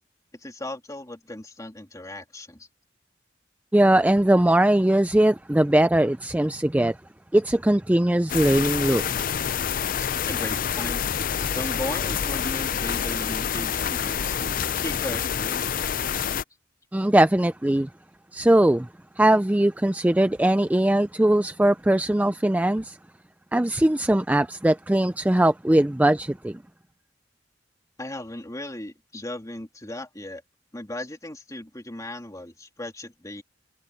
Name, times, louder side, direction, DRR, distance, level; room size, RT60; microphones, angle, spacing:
voice 1, 0.3-2.7 10.0-11.0 11.4-14.3 14.8-15.9 28.0-30.4 30.7-33.4, left 1 dB, 20° left, 3.0 m, -37 dB
voice 2, 3.7-7.0 7.3-9.0 16.9-17.9 18.3-18.9 19.2-23.0 23.5-26.6, right 1 dB, 10° right, 0.4 m, -20 dB
sound 1, 8.3-16.4, left 8 dB, 50° left, 0.5 m, -27 dB
sound 2, 14.3-15.3, equal, 65° right, 5.7 m, -48 dB
head